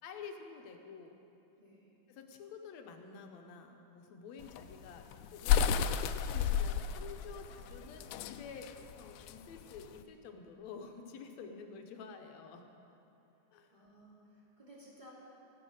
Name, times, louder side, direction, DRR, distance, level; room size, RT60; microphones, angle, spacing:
voice 1, 0.0-1.1 2.1-5.7 6.3-12.7 13.5-13.7, left 5 dB, 70° left, 4 dB, 2.0 m, -49 dB
voice 2, 1.6-2.0 6.3-6.4 11.4-11.5 13.7-15.1, equal, 15° right, -6 dB, 2.6 m, -57 dB
sound 1, 4.4-10.0, left 8 dB, 90° left, 2.1 m, -32 dB
14.5 x 11.0 x 6.4 m, 3.0 s
omnidirectional pair, 3.5 m